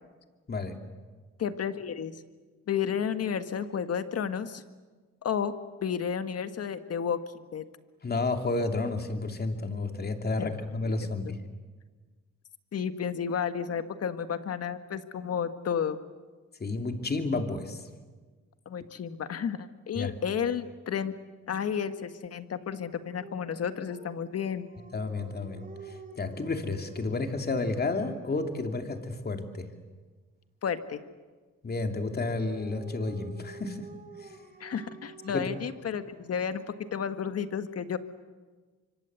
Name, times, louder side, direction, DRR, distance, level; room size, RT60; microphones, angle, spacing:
voice 1, 1.4-2.2 2.7-4.6 5.2-5.5 5.8-7.6 10.4-10.5 11.0-11.3 12.7-16.0 18.6-21.1 21.5-24.7 30.6-31.0 34.6-38.0, left 7 dB, 55° left, 10 dB, 1.6 m, -32 dB
voice 2, 8.0-11.4 16.6-17.8 20.0-20.1 24.9-25.6 26.2-29.7 31.6-33.9 35.3-35.5, left 3 dB, 30° left, 5 dB, 2.9 m, -31 dB
Dog, 23.1-29.0 32.1-36.7, right 4 dB, 30° right, 4.5 m, -50 dB
25.0 x 24.5 x 8.2 m, 1.4 s
cardioid pair, 90°, 30 cm